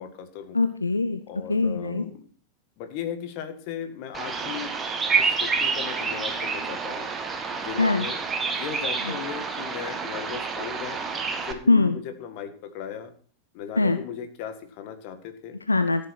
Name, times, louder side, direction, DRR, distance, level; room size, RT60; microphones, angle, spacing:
voice 1, 0.0-0.6 1.3-2.3 2.8-4.7 5.1-7.1 7.6-11.0 11.5-13.1 13.5-15.6, left 8 dB, 45° left, 8 dB, 1.9 m, -37 dB
voice 2, 0.5-1.2 1.5-2.0 7.8-8.1 11.7-12.0 13.8-14.0 15.7-16.1, left 3 dB, 80° left, 9 dB, 0.8 m, -22 dB
Bird vocalization bird call bird song, 4.1-11.5, right 5 dB, 15° right, 1.7 m, -28 dB
14.0 x 7.6 x 6.0 m, 0.44 s
figure-of-eight pair, 90°, 0 cm